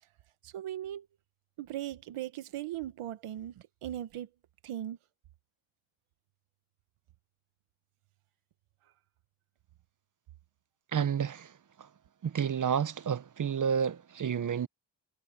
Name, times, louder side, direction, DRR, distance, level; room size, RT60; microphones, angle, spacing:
voice 1, 0.4-1.1 1.6-4.3 4.6-5.0, right 12 dB, 85° right, 1.3 m, -38 dB
voice 2, 10.9-11.5 11.8-11.9 12.2-14.7, right 7 dB, 40° right, 0.9 m, -30 dB
cardioid pair, 95°, 49 cm